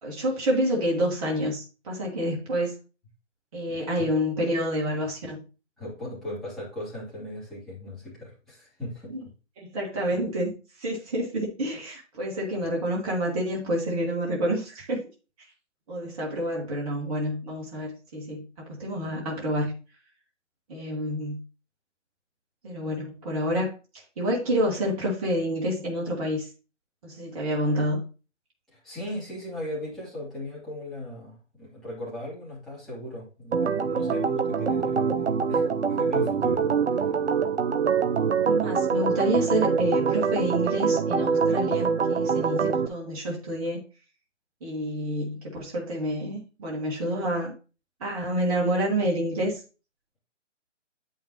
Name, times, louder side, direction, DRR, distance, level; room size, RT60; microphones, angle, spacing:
voice 1, 0.0-2.8 3.5-5.4 9.1-9.2 9.6-10.5 10.8-15.0 15.9-19.7 20.7-21.4 22.6-26.5 27.0-28.0 38.4-43.8 44.6-47.5 48.0-49.6, equal, 30° right, -3 dB, 1.9 m, -28 dB
voice 2, 3.7-4.1 5.8-9.2 28.7-36.6 36.9-37.1, left 1 dB, ahead, -10 dB, 2.9 m, -38 dB
Organ, 33.5-42.9, right 6 dB, 65° right, 0.7 m, -24 dB
8.7 x 5.8 x 3.0 m, 0.33 s
figure-of-eight pair, 145°, 37 cm